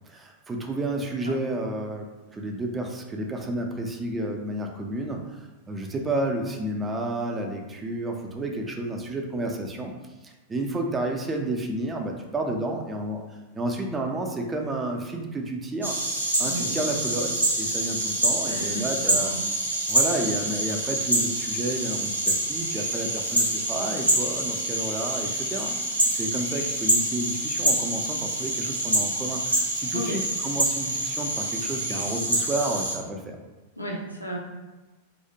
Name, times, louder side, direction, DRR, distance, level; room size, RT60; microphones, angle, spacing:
voice 1, 0.1-9.9 10.2-13.2 13.5-16.0 16.4-19.3 19.9-25.8 26.1-33.4, right 1 dB, 15° right, 2 dB, 0.3 m, -31 dB
sound 1, 15.8-33.0, right 1 dB, 85° right, 0.4 m, -26 dB
voice 2, 16.4-16.7 18.5-19.4 29.9-30.1 33.8-34.4, right 1 dB, 90° left, -2 dB, 0.5 m, -33 dB
2.5 x 2.0 x 2.7 m, 1.2 s
figure-of-eight pair, 90°, 0 cm